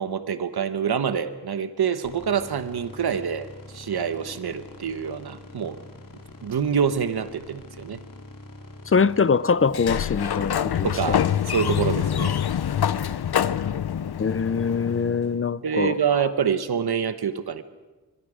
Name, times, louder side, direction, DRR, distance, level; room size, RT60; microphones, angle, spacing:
voice 1, 0.0-5.8 6.4-8.0 10.8-12.4 15.6-17.6, right 7 dB, 75° right, 1.1 m, -26 dB
sound 1, 2.0-11.2, left 2 dB, 55° left, 2.5 m, -45 dB
voice 2, 8.9-11.2 14.2-15.9, left 5 dB, 35° left, 0.6 m, -23 dB
Sliding door, 9.7-15.3, left 9 dB, 75° left, 0.7 m, -26 dB
25.0 x 22.5 x 5.0 m
wide cardioid pair, 95°, 39 cm